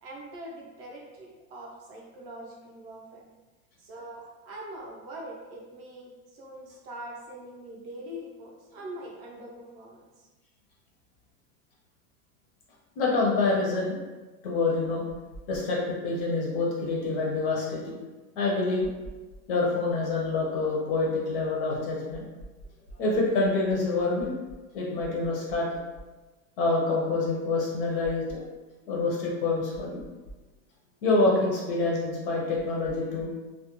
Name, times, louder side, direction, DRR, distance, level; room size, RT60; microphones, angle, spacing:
voice 1, 0.0-3.2 3.8-10.0, right 1 dB, 40° right, -2 dB, 0.5 m, -43 dB
voice 2, 13.0-14.0 14.4-15.0 15.5-17.9 18.4-18.9 19.5-22.2 23.0-24.3 24.7-25.7 26.6-28.4 28.9-30.0 31.0-33.3, left 3 dB, 40° left, -3 dB, 0.4 m, -26 dB
2.3 x 2.1 x 2.9 m, 1.2 s
supercardioid pair, 165°, 45 cm